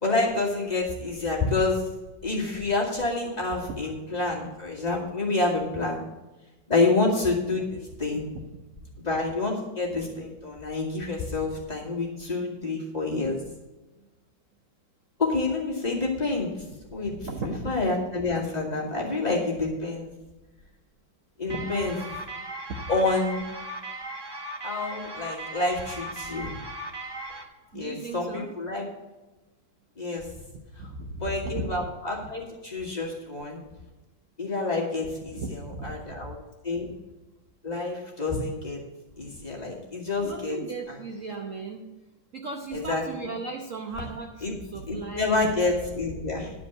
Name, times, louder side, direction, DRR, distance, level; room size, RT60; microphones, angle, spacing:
voice 1, 0.0-1.8 2.2-6.0 6.7-8.3 9.0-13.4 15.2-16.5 16.9-17.2 17.4-20.1 21.4-22.0 22.9-23.4 24.6-26.6 27.7-28.9 30.0-30.3 30.8-30.9 31.2-33.6 34.4-36.4 36.6-36.9 37.6-38.8 39.2-40.6 42.7-43.0 44.4-44.5 44.9-46.5, left 3 dB, 20° left, -4 dB, 2.4 m, -28 dB
voice 2, 17.0-17.7 21.5-21.9 22.7-22.9 27.7-28.5 30.8-31.7 35.3-36.4 40.2-41.9 42.3-45.3, right 3 dB, 50° right, 2 dB, 1.1 m, -36 dB
sound 1, 21.5-27.4, right 2 dB, 20° right, 0.7 m, -37 dB
11.5 x 5.1 x 8.2 m, 1.1 s
omnidirectional pair, 2.0 m